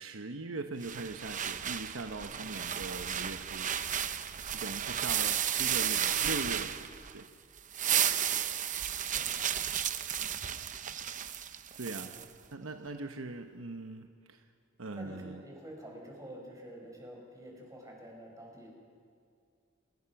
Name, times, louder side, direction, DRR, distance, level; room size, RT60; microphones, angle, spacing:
voice 1, 0.0-3.7 4.5-7.3 11.8-12.1 12.5-14.4 14.8-15.4, right 3 dB, 75° right, 6 dB, 1.0 m, -41 dB
sound 1, 0.8-7.2 7.6-12.2, right 9 dB, 40° right, 0.7 m, -33 dB
voice 2, 2.3-2.9 4.5-4.8 7.9-8.2 9.1-9.6 12.0-12.2 14.8-18.7, equal, 15° right, -1 dB, 5.2 m, -49 dB
29.0 x 19.5 x 5.9 m, 2.2 s
head